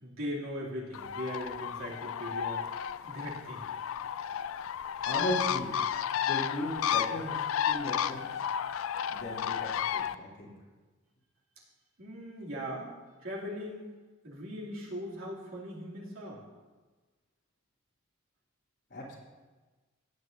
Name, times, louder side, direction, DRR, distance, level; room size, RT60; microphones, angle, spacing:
voice 1, 0.0-2.7 3.1-3.7 12.0-12.9 13.2-13.9 14.2-16.4, equal, 75° right, -5 dB, 2.7 m, -39 dB
Bird, 0.9-10.2, left 9 dB, 70° left, 0.3 m, -32 dB
voice 2, 5.0-5.7 6.2-8.5 9.1-10.5 18.9-19.1, equal, 55° left, -5 dB, 3.2 m, -37 dB
16.5 x 9.7 x 2.7 m, 1.3 s
head